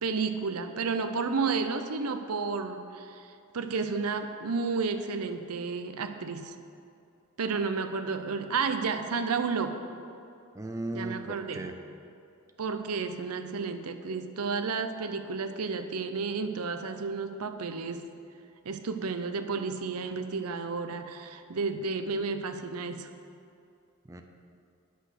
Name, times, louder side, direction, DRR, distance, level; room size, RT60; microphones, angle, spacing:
voice 1, 0.0-6.6 7.4-9.8 10.9-11.6 12.6-18.0 18.6-23.1, right 4 dB, 75° right, 8 dB, 0.6 m, -32 dB
voice 2, 10.5-11.8 24.0-24.2, right 2 dB, 15° right, 4 dB, 0.6 m, -36 dB
10.0 x 6.1 x 6.5 m, 2.6 s
head